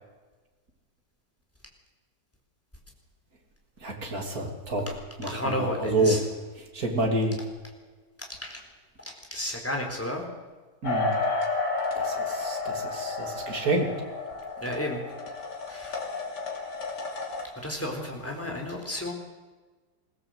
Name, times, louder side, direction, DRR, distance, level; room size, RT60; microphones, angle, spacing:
voice 1, 3.8-4.9 5.2-6.2 6.6-7.4 10.8-11.2 11.9-13.9, right 2 dB, 55° right, 3 dB, 3.4 m, -28 dB
voice 2, 5.2-6.2 8.2-8.6 9.1-10.2 14.6-15.0 15.7-16.0 17.6-19.1, left 1 dB, 5° left, 1 dB, 4.0 m, -32 dB
sound 1, 10.8-17.5, left 3 dB, 70° left, 3.5 m, -31 dB
22.0 x 16.5 x 8.0 m, 1.3 s
omnidirectional pair, 1.9 m